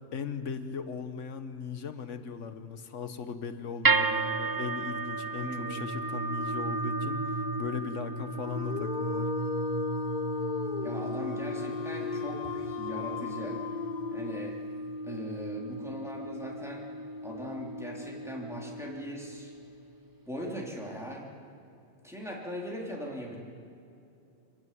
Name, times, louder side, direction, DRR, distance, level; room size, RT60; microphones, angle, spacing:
voice 1, 0.1-9.3, left 6 dB, 85° left, 9 dB, 1.4 m, -38 dB
sound 1, 3.8-20.1, right 3 dB, 25° right, 0.5 m, -34 dB
voice 2, 5.4-5.8 10.8-13.6 14.1-14.6 15.1-16.8 17.2-19.5 20.3-21.3 22.0-23.4, equal, ahead, -3 dB, 3.5 m, -39 dB
Dog, 8.4-14.7, left 7 dB, 50° left, 0.6 m, -37 dB
26.5 x 12.0 x 9.3 m, 2.8 s
omnidirectional pair, 1.2 m